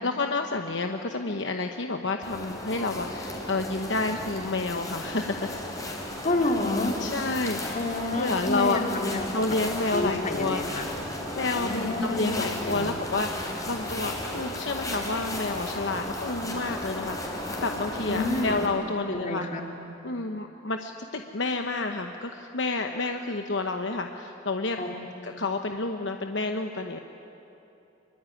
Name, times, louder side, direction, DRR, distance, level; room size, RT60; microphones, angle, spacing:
voice 1, 0.0-5.5 7.0-7.8 8.1-8.8 9.3-10.6 11.3-19.4 20.0-24.8 25.2-27.0, left 3 dB, 60° left, 4 dB, 1.0 m, -30 dB
sound 1, 2.2-18.7, left 1 dB, 20° left, 4.0 m, -35 dB
voice 2, 6.2-7.0 7.7-9.3 9.9-10.9 11.5-13.0 18.1-18.6 19.1-19.7 24.8-25.1, left 2 dB, 40° left, 2 dB, 2.6 m, -29 dB
25.0 x 23.5 x 9.9 m, 3.0 s
head